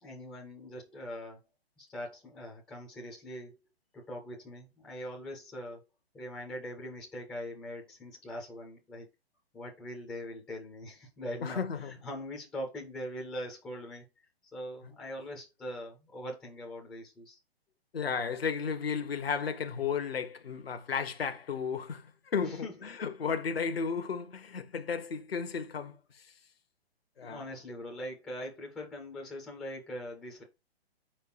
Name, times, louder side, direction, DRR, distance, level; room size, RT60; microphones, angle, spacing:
voice 1, 0.0-1.4 1.8-3.6 3.9-5.8 6.1-9.1 9.5-14.0 14.5-17.4 22.4-22.7 27.2-30.4, equal, 5° left, 0.4 m, -42 dB
voice 2, 11.4-11.9 17.9-26.2 27.2-27.5, left 6 dB, 65° left, 0.8 m, -34 dB
4.7 x 4.4 x 4.6 m
figure-of-eight pair, 120°, 32 cm